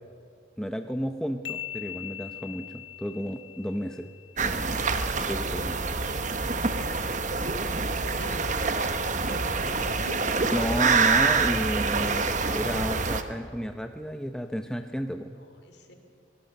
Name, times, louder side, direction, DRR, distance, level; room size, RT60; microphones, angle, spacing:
voice 1, 0.6-4.1 4.4-4.7 5.2-5.7 10.5-15.3, equal, 5° left, 6 dB, 0.7 m, -32 dB
sound 1, 1.4-5.0, left 11 dB, 85° left, 1.3 m, -41 dB
sound 2, 4.4-13.2, right 4 dB, 40° right, 1.1 m, -26 dB
voice 2, 7.5-10.6 15.6-15.9, left 1 dB, 60° left, 5 dB, 3.0 m, -44 dB
25.0 x 18.0 x 6.8 m, 2.4 s
head